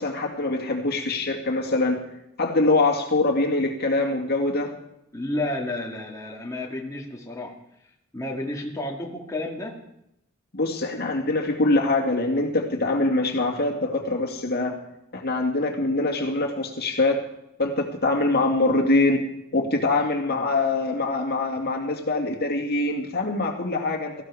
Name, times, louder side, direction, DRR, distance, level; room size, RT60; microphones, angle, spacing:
voice 1, 0.0-2.0 2.4-4.7 10.5-14.8 15.1-17.2 17.6-19.2 19.5-24.2, left 2 dB, 50° left, 2 dB, 2.3 m, -24 dB
voice 2, 5.1-7.5 8.1-9.8 20.3-20.5, left 1 dB, 15° left, -2 dB, 2.1 m, -31 dB
18.5 x 15.0 x 4.9 m, 0.82 s
head